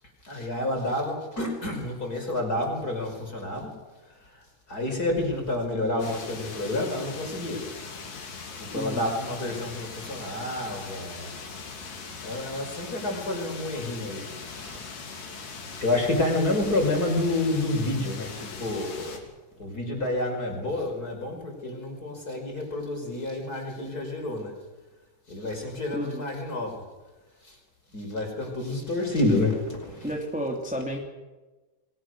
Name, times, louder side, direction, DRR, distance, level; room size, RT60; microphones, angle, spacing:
voice 1, 0.2-3.7 4.3-7.6 8.6-11.3 12.2-14.8 15.8-19.2 19.6-24.5 25.3-26.8 27.4-27.6 27.9-30.1, left 2 dB, 20° left, 2 dB, 5.4 m, -29 dB
sound 1, 6.0-19.2, left 4 dB, 50° left, 4.3 m, -40 dB
voice 2, 25.9-26.3 30.0-31.0, equal, ahead, 0 dB, 1.9 m, -31 dB
29.5 x 23.0 x 6.5 m, 1.2 s
omnidirectional pair, 5.3 m